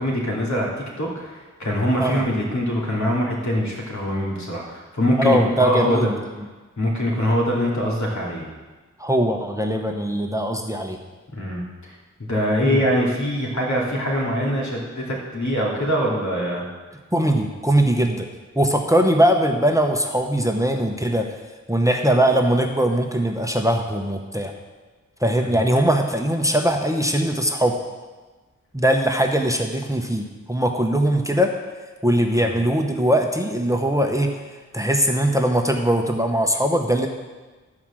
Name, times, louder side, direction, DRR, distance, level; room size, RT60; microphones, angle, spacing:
voice 1, 0.0-6.1 6.8-8.5 11.3-16.6 25.4-25.6 32.4-32.5, equal, 65° left, -4 dB, 2.8 m, -23 dB
voice 2, 5.2-6.1 9.0-11.0 12.6-12.8 17.1-18.3 18.5-21.3 21.7-24.5 25.2-27.8 28.7-31.5 32.0-34.4 34.7-37.1, right 1 dB, 10° right, 3 dB, 0.9 m, -20 dB
12.5 x 4.9 x 7.4 m, 1.3 s
wide cardioid pair, 75°, 30 cm